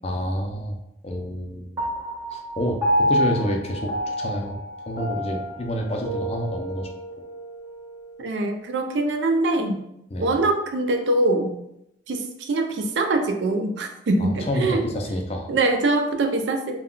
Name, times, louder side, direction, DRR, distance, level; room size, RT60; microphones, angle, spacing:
voice 1, 0.0-1.8 2.3-6.9 10.1-10.4 14.2-15.5, equal, 35° left, 2 dB, 0.4 m, -28 dB
Piano, 1.8-8.5, equal, 15° right, 0.6 m, -28 dB
voice 2, 8.2-9.8 10.2-11.5 12.1-14.8 15.5-16.8, right 2 dB, 75° right, 5 dB, 0.4 m, -23 dB
2.2 x 2.1 x 3.6 m, 0.82 s
head